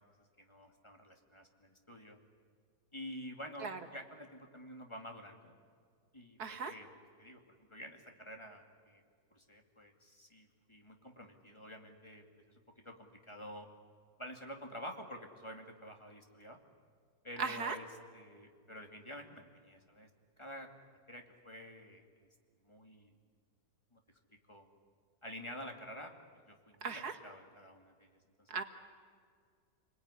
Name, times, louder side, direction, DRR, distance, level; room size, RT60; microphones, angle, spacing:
voice 1, 0.4-2.2 2.9-5.5 6.1-6.9 7.2-7.4 7.7-9.0 9.3-12.6 12.8-13.7 14.2-16.6 17.2-17.9 18.1-20.1 20.4-20.7 21.1-22.1 22.6-23.1 23.9-24.0 24.5-24.7 25.2-26.1 26.5-28.1 28.4-28.6, equal, 15° left, 3 dB, 2.5 m, -49 dB
voice 2, 6.4-6.7 17.4-17.8 26.8-27.1 28.5-28.6, right 5 dB, 75° right, 7 dB, 2.2 m, -37 dB
28.5 x 21.0 x 9.9 m, 2.1 s
omnidirectional pair, 1.7 m